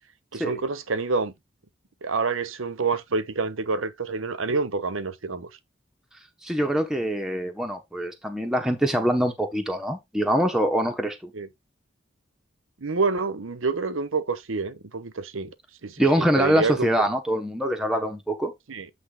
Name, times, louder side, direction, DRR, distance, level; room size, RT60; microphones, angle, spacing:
voice 1, 0.3-1.3 2.0-5.5 11.3-11.5 12.8-15.5 15.8-17.1 18.7-18.9, right 4 dB, 90° right, 0.9 m, -28 dB
voice 2, 6.4-11.3 16.0-18.5, equal, 5° right, 0.9 m, -24 dB
8.2 x 3.3 x 4.8 m
head